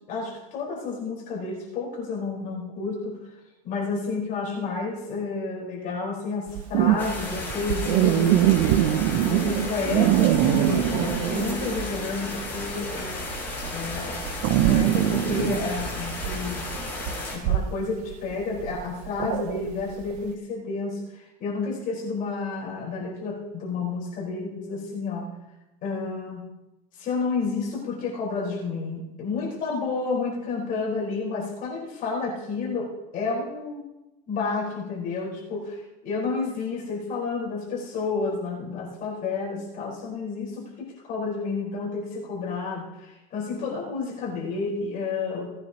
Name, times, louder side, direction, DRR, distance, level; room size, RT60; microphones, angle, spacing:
voice 1, 0.1-3.3 3.6-8.9 9.3-13.2 13.7-14.2 14.7-16.6 17.3-25.3 25.8-26.4 26.9-33.8 34.3-45.5, left 4 dB, 45° left, -4 dB, 4.6 m, -30 dB
sound 1, 6.5-12.0 12.3-20.2, right 13 dB, 70° right, 0.6 m, -23 dB
sound 2, 7.0-17.4, left 2 dB, 10° left, 4.0 m, -33 dB
18.5 x 9.6 x 2.9 m, 0.99 s
cardioid pair, 150°, 20 cm